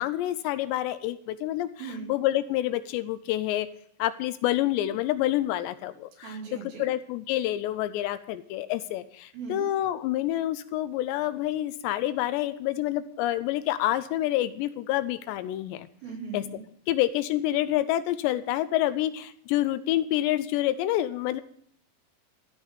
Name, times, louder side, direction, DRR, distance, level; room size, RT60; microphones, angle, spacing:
voice 1, 0.0-1.7 2.1-3.7 4.0-6.4 6.8-15.9 16.3-16.4 16.9-21.4, left 14 dB, 80° left, 13 dB, 2.8 m, -27 dB
voice 2, 1.8-2.1 6.2-6.9 9.3-9.7 16.0-16.6, right 5 dB, 75° right, -1 dB, 5.2 m, -38 dB
15.0 x 5.7 x 9.8 m, 0.65 s
omnidirectional pair, 5.1 m